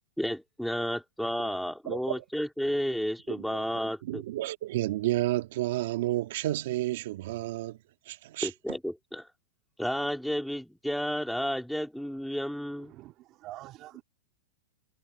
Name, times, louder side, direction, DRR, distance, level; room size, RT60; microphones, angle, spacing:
voice 1, 0.2-4.2 8.4-9.3 9.8-12.9, equal, ahead, 2.7 m, -32 dB
voice 2, 1.9-2.2 3.3-3.5 4.0-7.8 8.1-8.5, right 16 dB, 60° right, 1.8 m, -31 dB
voice 3, 12.7-14.0, right 16 dB, 35° right, 2.6 m, -46 dB
supercardioid pair, 150°, 0 cm